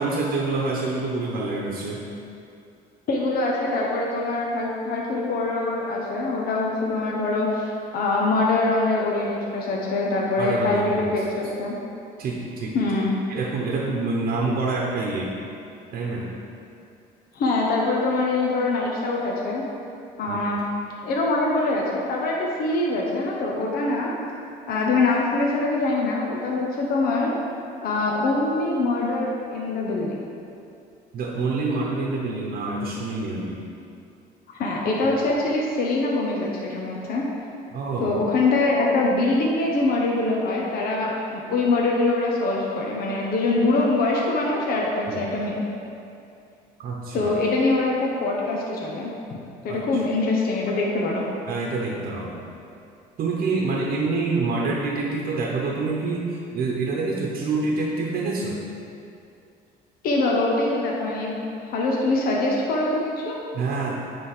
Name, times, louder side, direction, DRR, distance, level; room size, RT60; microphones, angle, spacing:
voice 1, 0.0-2.0 10.4-11.2 12.2-12.8 13.3-15.3 15.9-16.2 20.3-20.6 31.1-33.6 37.7-38.1 45.1-45.2 46.8-47.3 49.7-49.8 51.5-52.5 53.2-58.6 63.5-64.0, right 3 dB, 60° right, -2 dB, 0.9 m, -27 dB
voice 2, 3.1-11.7 12.7-13.1 17.3-19.6 20.2-20.7 21.0-24.1 24.7-27.3 27.8-30.3 34.5-37.2 38.0-45.6 47.1-49.1 49.6-51.2 60.0-61.4 61.7-63.4, left 2 dB, 65° left, -2 dB, 0.9 m, -24 dB
9.0 x 3.6 x 4.9 m, 2.6 s
cardioid pair, 110°, 17 cm